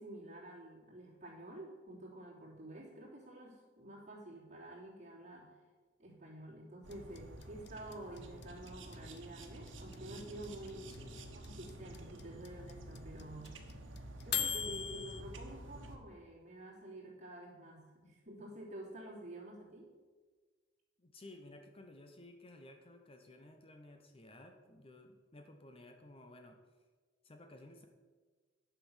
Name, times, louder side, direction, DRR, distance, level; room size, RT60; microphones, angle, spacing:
voice 1, 0.0-5.6 6.0-10.9 11.3-13.6 14.2-19.9, right 1 dB, 40° right, -5 dB, 3.1 m, -49 dB
sound 1, 6.8-16.0, right 1 dB, 90° right, 1.3 m, -50 dB
sound 2, 6.9-15.2, left 9 dB, 60° left, 0.6 m, -38 dB
voice 2, 10.9-11.3 21.0-26.6 27.2-27.9, left 1 dB, 30° left, 5 dB, 0.8 m, -55 dB
10.5 x 6.0 x 6.3 m, 1.4 s
head